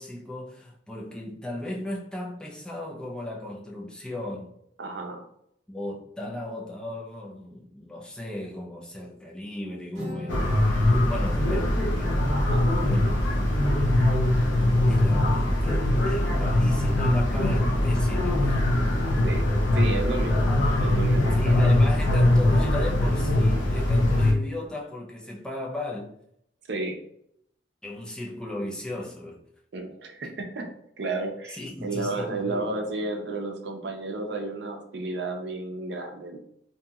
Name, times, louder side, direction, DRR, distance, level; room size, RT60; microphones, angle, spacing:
voice 1, 0.0-4.5 5.7-10.7 11.0-12.1 12.9-13.4 14.9-18.6 20.4-20.6 21.3-26.2 27.8-29.4 31.4-32.7, left 1 dB, 5° left, 0.4 m, -36 dB
voice 2, 4.8-5.3 12.3-12.7 19.2-19.5 19.7-20.5 20.8-21.8 22.1-22.3 26.7-27.0 29.7-30.6 31.0-36.4, right 2 dB, 65° right, 0.5 m, -32 dB
Acoustic guitar, 9.9-13.6, left 1 dB, 40° right, 1.3 m, -42 dB
sound 1, 10.3-24.3, left 1 dB, 85° left, 0.5 m, -22 dB
2.8 x 2.6 x 2.3 m
head